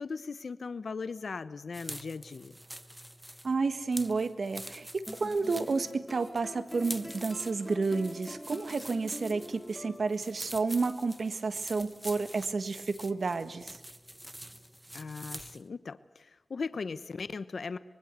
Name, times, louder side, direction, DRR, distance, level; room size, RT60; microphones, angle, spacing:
voice 1, 0.0-2.5 14.9-17.8, left 4 dB, 85° left, 13 dB, 0.9 m, -38 dB
sound 1, 1.7-15.7, right 1 dB, 10° right, 1.2 m, -46 dB
voice 2, 3.4-13.8, right 4 dB, 75° right, 11 dB, 1.5 m, -31 dB
sound 2, 5.1-10.5, left 1 dB, 10° left, 4.4 m, -45 dB
24.5 x 22.5 x 8.2 m, 1.1 s
wide cardioid pair, 75°, 0 cm